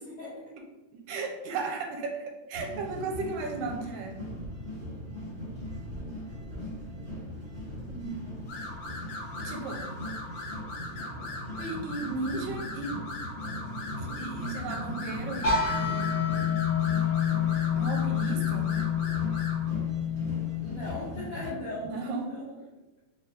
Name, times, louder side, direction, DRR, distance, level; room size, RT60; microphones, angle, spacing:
voice 1, 0.0-0.4 20.6-22.5, left 2 dB, 85° left, -7 dB, 1.2 m, -38 dB
voice 2, 1.1-4.2 7.9-8.2 9.4-9.8 11.6-13.0 14.0-16.1 17.7-18.7 21.9-22.4, right 4 dB, 85° right, 1 dB, 2.2 m, -35 dB
sound 1, 2.5-21.5, left 1 dB, 40° right, 0.7 m, -39 dB
sound 2, 8.5-19.7, left 2 dB, 70° left, 2.2 m, -40 dB
sound 3, 15.4-21.2, left 8 dB, 50° left, 1.2 m, -28 dB
6.2 x 2.2 x 2.7 m, 1.1 s
omnidirectional pair, 3.7 m